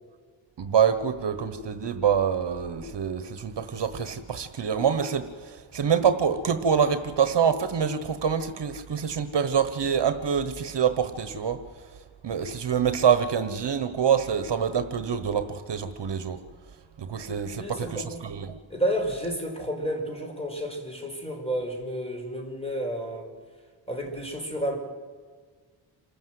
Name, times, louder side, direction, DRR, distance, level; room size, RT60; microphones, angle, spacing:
voice 1, 0.6-11.6 12.2-16.4 17.0-18.6, right 7 dB, 60° right, 10 dB, 1.2 m, -26 dB
voice 2, 17.6-18.2 18.7-23.3 23.9-24.8, equal, 10° left, 2 dB, 5.1 m, -31 dB
27.0 x 14.0 x 7.8 m, 1.5 s
wide cardioid pair, 105°, 47 cm